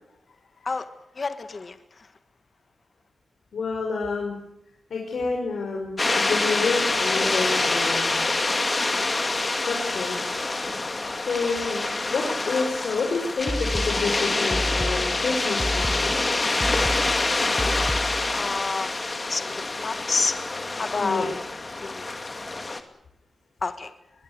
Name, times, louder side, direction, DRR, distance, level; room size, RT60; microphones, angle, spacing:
voice 1, 1.2-2.1 18.3-18.9 19.3-20.4 20.8-21.3 21.8-22.1 23.6-23.9, left 4 dB, 45° left, 10 dB, 1.7 m, -29 dB
voice 2, 3.5-4.4 4.9-8.2 9.7-10.2 11.3-16.5 21.0-21.3, left 4 dB, 80° left, 0 dB, 5.4 m, -29 dB
sound 1, 6.0-22.8, left 2 dB, 30° left, 2.4 m, -26 dB
sound 2, 13.5-18.4, equal, 5° left, 1.2 m, -31 dB
23.0 x 22.0 x 8.2 m, 0.81 s
wide cardioid pair, 85°, 0 cm